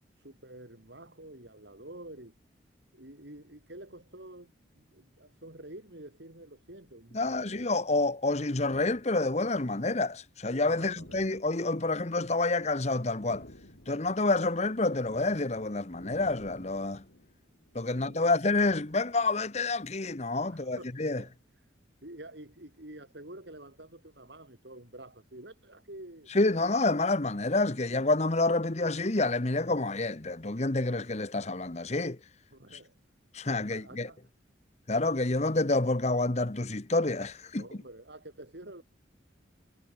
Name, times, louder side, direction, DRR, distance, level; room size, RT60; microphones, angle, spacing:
voice 1, 0.2-2.3 2.9-7.6 10.6-11.4 17.8-18.3 20.5-21.3 22.0-26.3 32.5-32.9 33.6-34.2 37.5-38.8, right 1 dB, 70° right, 4.5 m, -48 dB
sound 1, 5.2-5.4 6.4-7.9 8.4-9.6 10.2-12.7 12.9-19.5, left 1 dB, 70° left, 6.7 m, -54 dB
voice 2, 7.1-13.4 13.9-17.0 17.7-21.2 26.3-32.2 33.3-34.1 34.9-37.6, left 2 dB, 35° left, 1.1 m, -28 dB
head